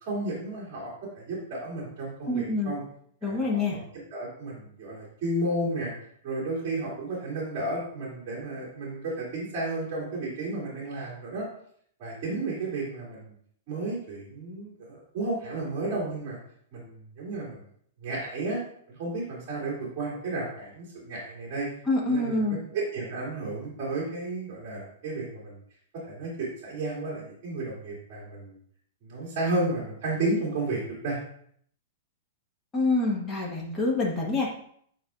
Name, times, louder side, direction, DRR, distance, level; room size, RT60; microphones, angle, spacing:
voice 1, 0.0-2.8 3.2-3.8 4.1-5.9 6.2-11.5 12.0-13.3 13.7-16.4 16.7-17.7 18.0-18.6 18.9-21.7 22.1-25.6 26.0-28.6 29.0-31.2, right 2 dB, 35° right, -5 dB, 2.5 m, -32 dB
voice 2, 2.3-2.7 3.2-3.8 21.9-22.6 32.7-34.5, left 2 dB, 15° left, -3 dB, 1.3 m, -26 dB
8.9 x 4.5 x 2.5 m, 0.64 s
supercardioid pair, 165°, 0 cm